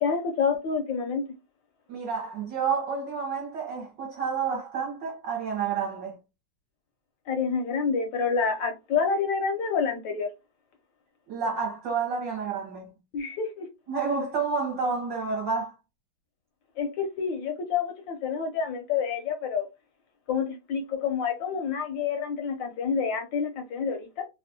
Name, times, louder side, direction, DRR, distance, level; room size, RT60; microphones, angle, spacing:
voice 1, 0.0-1.2 7.3-10.3 13.1-13.7 16.8-19.7 20.3-24.3, left 6 dB, 75° left, 1.1 m, -28 dB
voice 2, 1.9-6.2 11.3-13.0 13.9-15.7, right 5 dB, 65° right, 1.4 m, -29 dB
3.4 x 2.3 x 2.6 m
omnidirectional pair, 2.4 m